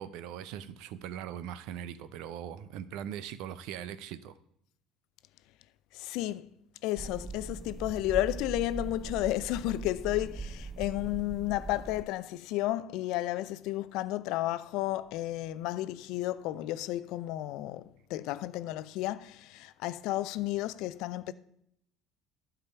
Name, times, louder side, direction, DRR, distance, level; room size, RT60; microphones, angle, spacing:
voice 1, 0.0-4.4, right 9 dB, 65° right, 0.6 m, -40 dB
voice 2, 5.9-6.5 6.8-21.3, left 15 dB, 65° left, 0.5 m, -32 dB
sound 1, 7.0-12.0, right 3 dB, 10° right, 0.5 m, -41 dB
11.5 x 4.8 x 6.8 m
hypercardioid pair, 65°, 0 cm